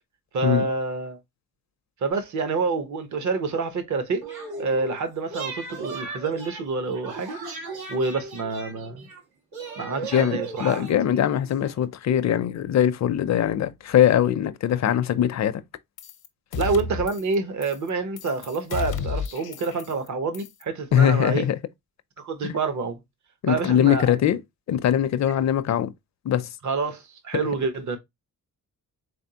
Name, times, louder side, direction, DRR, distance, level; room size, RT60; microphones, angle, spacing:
voice 1, 0.3-1.2 2.0-4.2 4.6-7.4 7.9-9.1 9.8-10.9 16.6-21.5 22.2-23.0 23.5-24.2 26.6-28.0, right 4 dB, 50° right, 0.9 m, -27 dB
sound 1, 4.2-5.0 5.3-9.2 9.5-11.8, right 3 dB, 90° right, 1.6 m, -37 dB
voice 2, 10.1-15.6 20.9-21.6 22.4-22.5 23.4-24.4 24.7-25.9 26.2-26.5, left 10 dB, 50° left, 0.5 m, -21 dB
sound 2, 16.0-16.3 16.5-17.4 17.6-17.9 18.2-20.1 20.3-20.6, left 6 dB, 85° left, 0.7 m, -32 dB
3.8 x 3.4 x 2.8 m
wide cardioid pair, 115°, 36 cm